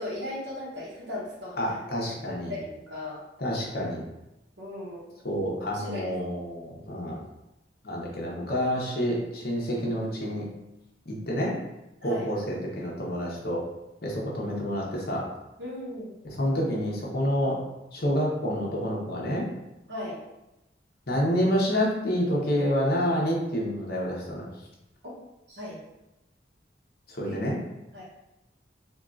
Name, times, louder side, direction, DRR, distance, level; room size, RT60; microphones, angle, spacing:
voice 1, 0.0-3.2 4.6-5.1 5.6-6.2 12.0-12.3 15.6-16.1 19.9-20.2 25.0-25.1 25.5-25.8 27.2-27.4 27.9-28.0, left 1 dB, 80° right, -6 dB, 0.8 m, -37 dB
voice 2, 1.6-2.5 3.4-4.0 5.2-7.2 7.8-10.5 11.1-11.5 12.0-13.6 14.0-15.2 16.2-17.6 17.9-19.5 21.1-24.5 27.1-27.6, equal, 55° left, -3 dB, 0.8 m, -28 dB
3.5 x 2.3 x 2.4 m, 0.94 s
head